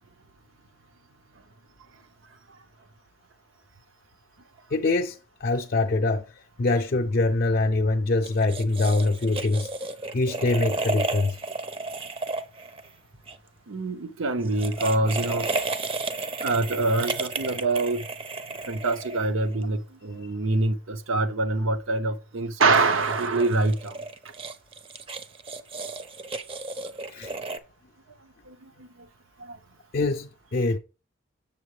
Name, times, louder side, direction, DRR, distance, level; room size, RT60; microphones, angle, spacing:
voice 1, 4.7-9.7 10.1-11.4 27.1-27.3 29.9-30.8, left 2 dB, 45° left, 0.4 m, -24 dB
sound 1, 8.2-13.4 14.4-19.6 22.8-27.6, right 3 dB, 25° right, 0.5 m, -33 dB
voice 2, 13.7-15.5 16.4-18.1 18.6-24.0 24.2-24.3 28.5-29.1 29.4-29.6, right 2 dB, 85° right, 0.8 m, -25 dB
7.4 x 7.0 x 3.2 m
head